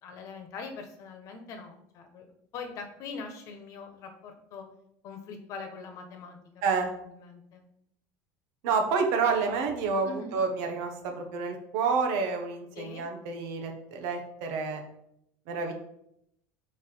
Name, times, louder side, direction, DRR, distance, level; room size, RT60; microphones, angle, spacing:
voice 1, 0.0-4.7 5.0-7.6 10.0-10.4 12.7-13.0 15.5-15.7, left 4 dB, 50° left, 5 dB, 1.2 m, -43 dB
voice 2, 8.6-14.8 15.5-15.7, right 5 dB, 70° right, 4 dB, 1.3 m, -29 dB
5.7 x 4.5 x 4.5 m, 0.76 s
cardioid pair, 135°, 7 cm